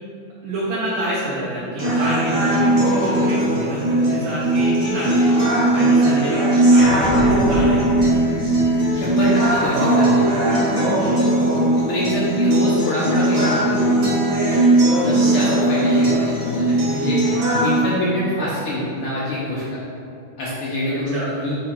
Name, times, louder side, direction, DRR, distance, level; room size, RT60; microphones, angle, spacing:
voice 1, 0.4-5.4 5.7-8.2 11.0-11.3 14.9-15.1 18.0-18.1 18.4-18.5 20.9-21.3, right 1 dB, 65° right, -9 dB, 2.0 m, -28 dB
sound 1, 1.8-17.8, right 1 dB, 45° right, 2.0 m, -18 dB
sound 2, 6.7-11.5, equal, 40° left, 0.9 m, -29 dB
voice 2, 9.0-10.2 10.7-10.9 11.7-14.0 15.0-17.2 17.6-19.6 20.4-21.6, left 1 dB, 70° left, -7 dB, 1.3 m, -25 dB
5.9 x 3.7 x 4.9 m, 2.6 s
omnidirectional pair, 3.5 m